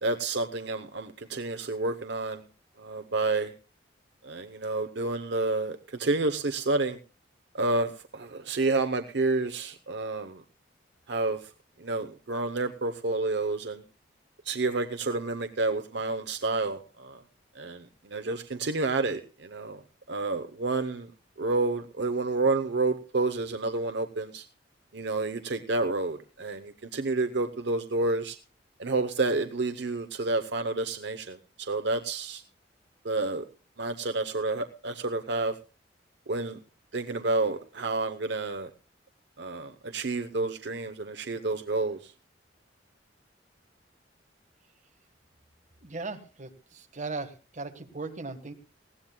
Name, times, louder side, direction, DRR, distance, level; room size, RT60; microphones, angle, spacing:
voice 1, 0.0-2.4 2.8-3.5 4.2-7.0 7.5-10.4 11.1-11.4 11.8-13.8 14.5-17.2 17.6-17.8 18.1-19.8 20.1-21.1 21.4-24.4 24.9-28.4 28.8-32.4 33.0-33.4 33.8-35.5 36.3-36.6 36.9-38.7 39.4-42.1, right 3 dB, 65° right, 9 dB, 0.8 m, -29 dB
voice 2, 45.8-48.5, right 3 dB, 40° right, 6 dB, 1.5 m, -38 dB
19.5 x 16.0 x 2.3 m, 0.32 s
head